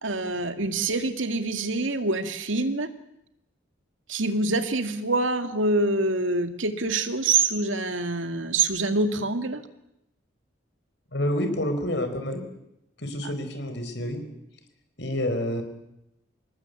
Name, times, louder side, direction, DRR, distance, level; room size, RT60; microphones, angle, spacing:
voice 1, 0.0-2.9 4.1-9.6, right 3 dB, 85° right, 7 dB, 2.3 m, -25 dB
voice 2, 11.1-12.4 13.0-14.2 15.0-15.6, left 1 dB, 65° left, 7 dB, 4.9 m, -28 dB
27.0 x 20.5 x 8.4 m, 0.84 s
head